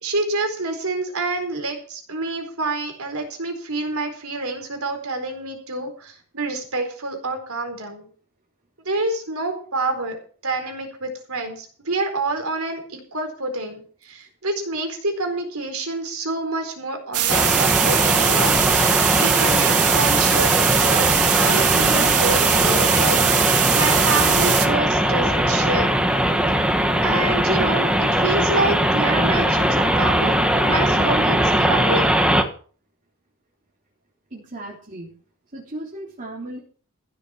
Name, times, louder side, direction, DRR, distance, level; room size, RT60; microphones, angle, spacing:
voice 1, 0.0-8.1 8.9-10.2 10.4-18.6 19.2-25.9 27.0-30.3 30.6-32.1, right 2 dB, 70° right, 5 dB, 4.3 m, -27 dB
sound 1, 17.1-24.7, right 11 dB, 90° right, 1.9 m, -21 dB
sound 2, 17.3-32.4, equal, 5° right, 1.4 m, -20 dB
voice 2, 34.3-35.1 35.5-36.6, right 1 dB, 35° right, -4 dB, 3.5 m, -36 dB
15.0 x 7.5 x 7.0 m, 0.44 s
head